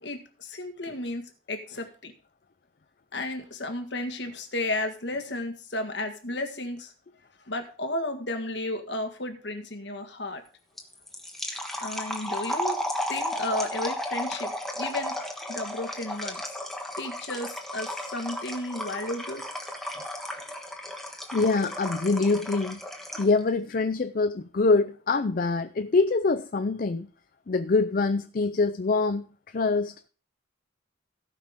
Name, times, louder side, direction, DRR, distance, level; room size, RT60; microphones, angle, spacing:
voice 1, 0.0-2.1 3.1-6.9 7.5-10.4 11.8-12.8 13.1-15.2 15.5-16.6 17.0-19.4, left 1 dB, 65° left, 1.7 m, -33 dB
sound 1, 10.8-23.4, left 1 dB, ahead, 1.3 m, -34 dB
voice 2, 21.3-22.8 23.2-27.1 27.5-30.1, left 3 dB, 50° left, 0.5 m, -25 dB
17.0 x 5.9 x 3.7 m
head